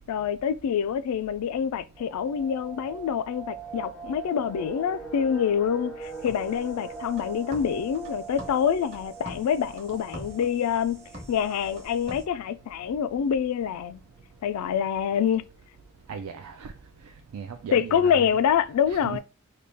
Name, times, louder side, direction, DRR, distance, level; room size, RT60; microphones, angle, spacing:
voice 1, 0.1-14.0 14.4-15.4 17.7-19.2, left 8 dB, 80° left, 0.3 m, -26 dB
sound 1, 2.0-12.8 13.1-13.2 13.5-13.7 14.1-14.6 15.1-15.2 15.4-15.9 16.2-16.3, right 4 dB, 5° left, 0.4 m, -42 dB
sound 2, 6.0-12.2, equal, 30° right, 0.9 m, -45 dB
voice 2, 16.1-16.7 17.3-18.4 18.9-19.2, right 6 dB, 80° right, 0.4 m, -37 dB
3.9 x 2.2 x 3.4 m
head